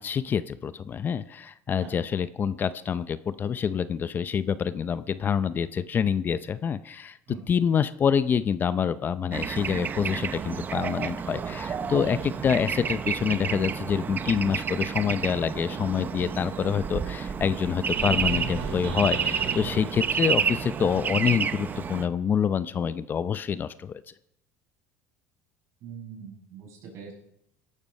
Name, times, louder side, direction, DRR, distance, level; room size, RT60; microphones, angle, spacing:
voice 1, 0.0-24.0, left 7 dB, 35° left, 15 dB, 0.6 m, -27 dB
Bird / Traffic noise roadway noise, 9.3-22.0, right 6 dB, 30° right, 0.8 m, -30 dB
sound 1, 17.9-21.9, right 5 dB, 85° right, 4.2 m, -38 dB
voice 2, 25.8-27.1, right 6 dB, 55° right, 0 dB, 6.4 m, -41 dB
17.5 x 12.0 x 5.4 m, 0.77 s
supercardioid pair, 115°, 6 cm